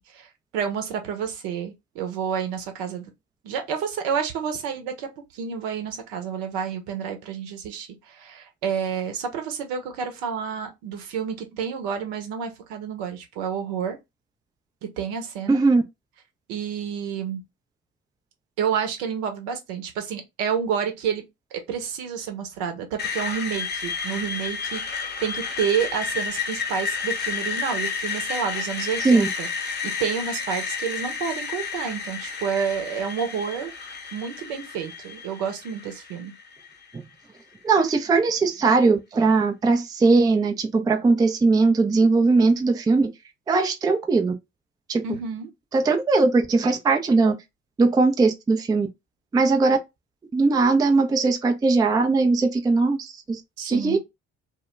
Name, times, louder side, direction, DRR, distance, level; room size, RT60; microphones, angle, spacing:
voice 1, 0.0-3.1 3.4-14.0 15.0-15.6 16.5-17.4 18.6-21.2 21.5-33.7 34.1-36.3 45.0-45.5 53.6-54.0, right 7 dB, 65° right, 0.8 m, -29 dB
voice 2, 15.5-15.8 29.0-29.3 37.6-43.1 43.5-44.3 44.9-45.0 45.7-47.4 47.8-48.9 49.3-49.8 50.3-53.4 53.7-54.0, right 3 dB, 10° right, 0.4 m, -20 dB
Screech, 23.0-36.9, left 5 dB, 30° left, 0.8 m, -31 dB
2.1 x 2.1 x 3.0 m
figure-of-eight pair, 50°, 36 cm